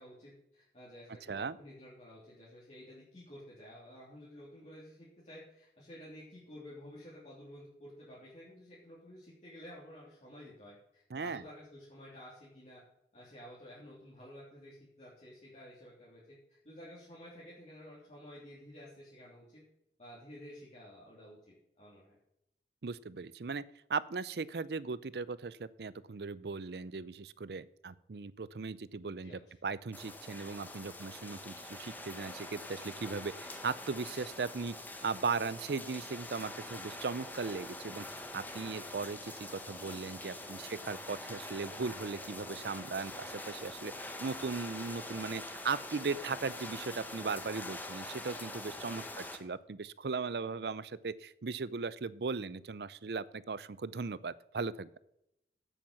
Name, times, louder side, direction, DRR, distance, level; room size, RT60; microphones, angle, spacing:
voice 1, 0.0-12.8 13.1-19.6 20.0-22.1 29.2-29.4 40.4-40.8 48.9-49.2, equal, 40° left, -7 dB, 3.3 m, -52 dB
voice 2, 11.1-11.4 22.8-23.6 23.9-34.8 35.0-55.0, right 4 dB, 65° right, 18 dB, 0.5 m, -38 dB
sound 1, 29.9-49.4, left 2 dB, 10° left, 1.3 m, -45 dB
9.1 x 8.7 x 5.7 m, 0.80 s
head